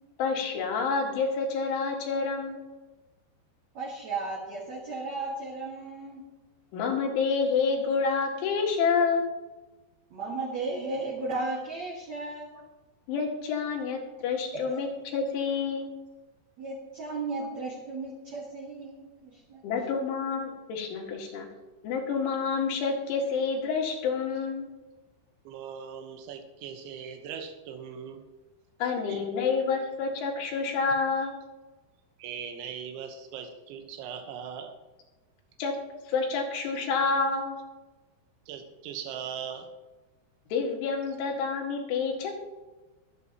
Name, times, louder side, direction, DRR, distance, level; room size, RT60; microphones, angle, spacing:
voice 1, 0.2-2.7 6.7-9.3 13.1-15.9 19.6-21.5 21.8-24.7 28.8-31.4 35.6-35.7 36.1-37.6 40.5-42.3, left 5 dB, 90° left, 0 dB, 4.4 m, -28 dB
voice 2, 3.7-6.2 10.1-12.5 14.5-14.8 16.6-19.6 20.0-20.1, right 3 dB, 50° right, -4 dB, 2.4 m, -35 dB
voice 3, 25.5-28.2 28.8-29.2 32.2-34.8 38.5-39.7, right 7 dB, 85° right, 5 dB, 3.5 m, -40 dB
22.0 x 8.4 x 3.0 m, 1.2 s
omnidirectional pair, 5.3 m